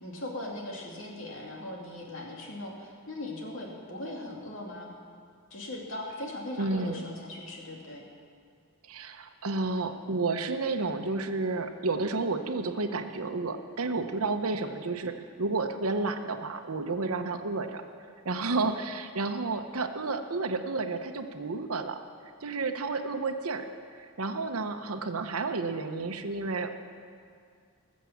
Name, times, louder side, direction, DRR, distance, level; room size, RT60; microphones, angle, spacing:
voice 1, 0.0-4.9 5.5-8.0, left 1 dB, 60° left, -1 dB, 2.6 m, -39 dB
voice 2, 6.6-7.0 8.9-15.1 15.4-17.8 18.2-22.0 22.4-23.7 24.0-26.7, right 3 dB, 85° right, 7 dB, 1.0 m, -31 dB
19.5 x 7.5 x 7.3 m, 2.2 s
head